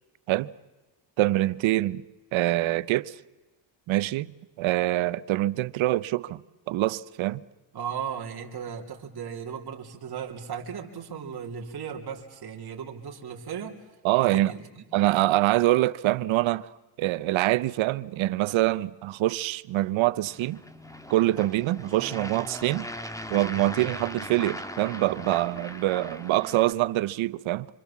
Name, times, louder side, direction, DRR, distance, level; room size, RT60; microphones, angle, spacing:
voice 1, 1.2-2.0 2.3-3.2 3.9-4.3 4.6-7.4 14.0-14.5 14.9-16.7 17.0-20.6 21.1-22.9 23.3-27.7, right 16 dB, 90° right, 0.8 m, -25 dB
voice 2, 7.7-13.8 14.2-14.8, right 7 dB, 55° right, 3.3 m, -36 dB
sound 1, 20.2-26.7, left 1 dB, 5° left, 2.0 m, -39 dB
26.5 x 26.0 x 7.4 m
cardioid pair, 80°, 45 cm